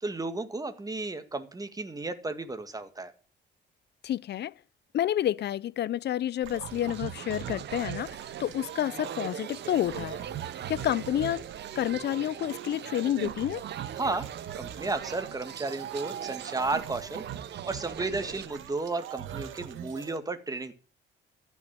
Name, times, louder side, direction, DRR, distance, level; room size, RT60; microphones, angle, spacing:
voice 1, 0.0-3.1 14.0-14.3 14.6-17.2 17.6-20.7, right 3 dB, 20° right, 1.8 m, -33 dB
voice 2, 4.0-4.5 4.9-10.2 10.7-11.4 11.8-13.6, left 11 dB, 60° left, 0.5 m, -29 dB
sound 1, 6.4-20.2, right 10 dB, 75° right, 1.6 m, -41 dB
sound 2, 6.7-18.5, right 10 dB, 60° right, 0.8 m, -41 dB
14.5 x 6.3 x 8.7 m
cardioid pair, 90°, 20 cm